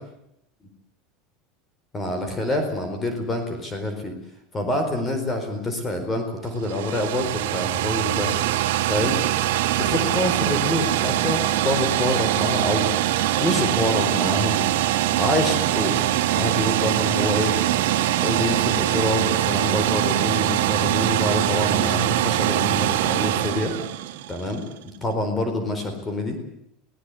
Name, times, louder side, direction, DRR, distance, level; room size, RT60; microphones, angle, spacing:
voice 1, 1.9-4.2 4.5-8.3 8.9-9.2 9.8-12.9 13.4-14.6 15.2-17.5 18.2-23.7 24.3-26.4, left 1 dB, 20° left, 6 dB, 4.4 m, -26 dB
sound 1, 6.4-24.5, right 13 dB, 85° right, 2.0 m, -23 dB
23.5 x 17.5 x 8.4 m, 0.79 s
supercardioid pair, 140°, 0 cm